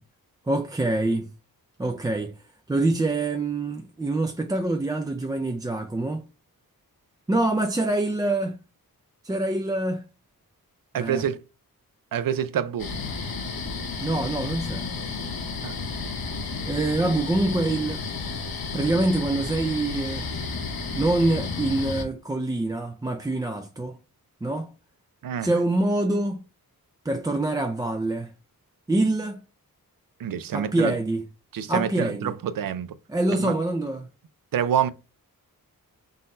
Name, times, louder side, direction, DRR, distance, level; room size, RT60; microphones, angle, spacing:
voice 1, 0.5-1.3 1.8-2.3 2.7-6.3 7.3-8.6 9.2-10.0 10.9-11.3 14.0-14.9 16.7-18.0 18.7-20.3 20.9-24.0 24.4-24.7 25.4-26.4 27.1-28.3 28.9-29.4 30.5-31.3 31.7-32.3 33.1-34.1, right 2 dB, 10° right, 0.3 m, -25 dB
voice 2, 10.9-11.4 12.1-12.9 15.6-15.7 25.2-25.5 30.2-31.0 31.5-32.9 33.3-33.5 34.5-34.9, right 9 dB, 70° right, 0.5 m, -27 dB
sound 1, 12.8-22.0, left 4 dB, 75° left, 1.0 m, -32 dB
3.9 x 2.6 x 4.1 m
wide cardioid pair, 145°, 36 cm